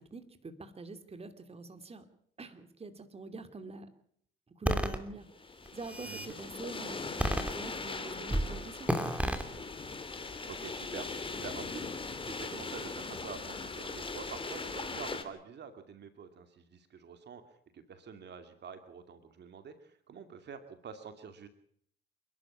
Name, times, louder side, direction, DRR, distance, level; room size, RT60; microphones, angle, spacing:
voice 1, 0.0-2.1 2.4-3.9 4.6-8.9, right 3 dB, 30° right, 9 dB, 2.8 m, -45 dB
sound 1, 4.6-5.0 5.7-6.3 7.2-7.9 8.3-8.5 8.9-9.4, equal, 5° right, 3.0 m, -30 dB
sound 2, 5.3-15.2, left 3 dB, 25° left, 3.1 m, -40 dB
voice 2, 6.0-6.4 10.4-17.4 17.7-21.5, right 6 dB, 60° right, 8 dB, 2.5 m, -47 dB
28.0 x 12.5 x 8.6 m, 0.64 s
cardioid pair, 90°, 20 cm